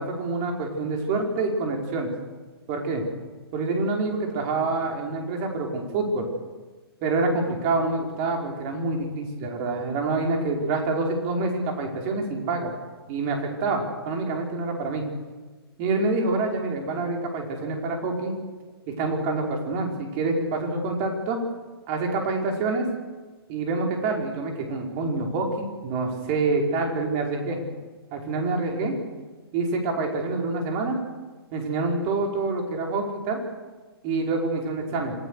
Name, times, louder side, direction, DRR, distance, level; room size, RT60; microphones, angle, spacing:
voice 1, 0.0-2.1 2.7-3.0 3.5-6.3 7.0-12.7 13.1-15.0 15.8-18.4 18.9-21.4 21.9-22.9 23.5-27.6 28.1-28.9 29.5-31.0 31.5-33.4 34.0-35.1, right 3 dB, 35° right, 2 dB, 5.3 m, -26 dB
27.0 x 18.5 x 6.7 m, 1.3 s
figure-of-eight pair, 120°, 13 cm